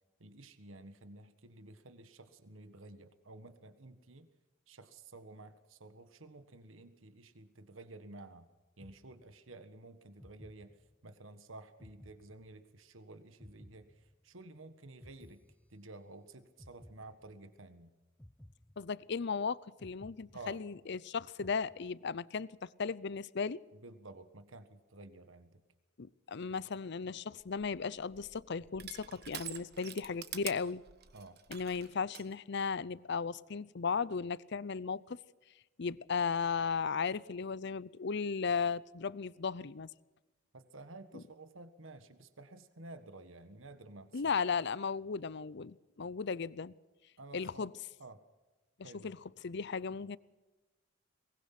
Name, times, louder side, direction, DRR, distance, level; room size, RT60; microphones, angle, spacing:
voice 1, 0.2-4.3 4.7-8.5 8.8-10.8 11.0-15.4 15.7-17.9 20.3-20.6 23.7-25.6 31.1-31.4 40.5-44.4 47.2-47.7 48.0-48.2 48.8-49.1, right 2 dB, 80° right, 1.5 m, -52 dB
sound 1, 8.8-9.7 10.2-11.3 11.8-13.0 13.4-14.6 15.0-16.2 16.6-17.7 18.2-19.4 19.8-21.0 21.4-22.3, equal, 5° left, 0.6 m, -58 dB
voice 2, 18.8-23.6 26.0-30.8 31.5-35.2 35.8-39.9 41.1-41.2 44.1-46.7 47.3-47.7 48.8-49.2 49.4-50.2, left 5 dB, 60° left, 0.6 m, -36 dB
Crushing, 27.4-32.3, right 10 dB, 55° right, 1.4 m, -47 dB
22.5 x 20.0 x 5.9 m
head